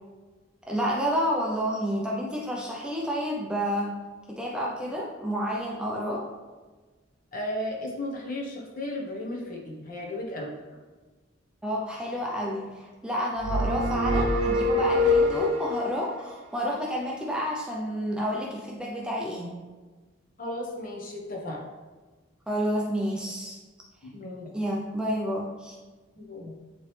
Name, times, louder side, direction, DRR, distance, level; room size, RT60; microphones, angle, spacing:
voice 1, 0.7-4.0 4.3-6.3 11.6-19.5 22.5-23.6 24.5-25.8, equal, 5° right, -3 dB, 0.5 m, -30 dB
voice 2, 7.3-10.6 20.4-21.6 24.0-24.5 26.2-26.6, left 1 dB, 45° left, -2 dB, 1.1 m, -35 dB
sound 1, 13.4-15.8, left 2 dB, 85° right, 0.7 m, -24 dB
9.4 x 3.1 x 3.3 m, 1.3 s
head